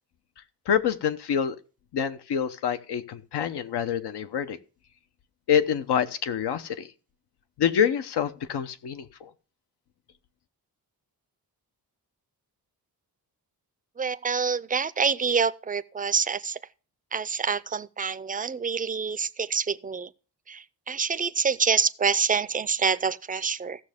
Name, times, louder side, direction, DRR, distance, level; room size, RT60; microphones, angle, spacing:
voice 1, 0.7-1.6 1.9-4.6 5.5-6.9 7.6-9.3, left 8 dB, 85° left, 0.9 m, -26 dB
voice 2, 14.0-16.6 17.1-20.1 20.5-23.8, right 5 dB, 20° right, 0.4 m, -26 dB
15.5 x 6.5 x 3.5 m
cardioid pair, 100°, 39 cm